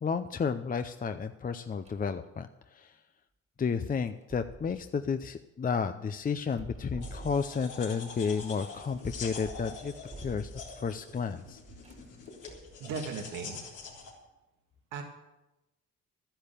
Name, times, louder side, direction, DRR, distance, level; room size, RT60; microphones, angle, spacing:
voice 1, 0.0-3.0 3.6-9.9 10.2-10.5 10.8-11.6, left 5 dB, 30° left, 9 dB, 0.6 m, -32 dB
sound 1, 1.8-2.2 4.1-5.0 6.4-7.7 8.7-10.9 11.7-12.8, right 2 dB, 20° right, 1.8 m, -47 dB
sound 2, 7.0-14.1, left 5 dB, 85° left, 3.6 m, -45 dB
voice 2, 12.8-13.6 14.9-15.0, right 5 dB, 90° right, 2 dB, 2.0 m, -37 dB
12.5 x 10.0 x 6.8 m, 0.99 s
cardioid pair, 90°, 30 cm